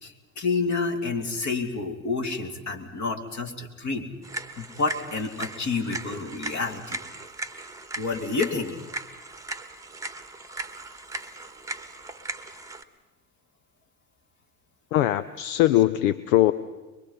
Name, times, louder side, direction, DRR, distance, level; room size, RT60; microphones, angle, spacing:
voice 1, 0.0-4.1 4.6-7.0 8.0-8.7, left 4 dB, 40° left, 4 dB, 2.8 m, -29 dB
sound 1, 4.2-12.8, right 2 dB, 10° right, 1.3 m, -38 dB
voice 2, 14.9-16.5, left 14 dB, 70° left, 14 dB, 0.7 m, -21 dB
23.5 x 23.0 x 5.6 m, 1.2 s
hypercardioid pair, 75°, 42 cm